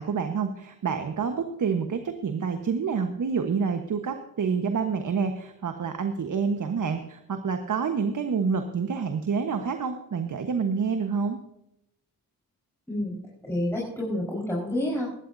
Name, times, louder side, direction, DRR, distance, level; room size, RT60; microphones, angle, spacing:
voice 1, 0.0-11.4, right 5 dB, 55° right, 6 dB, 1.3 m, -28 dB
voice 2, 12.9-15.1, left 1 dB, 5° left, -4 dB, 4.7 m, -29 dB
22.5 x 11.5 x 2.7 m, 0.85 s
cardioid pair, 65°, 36 cm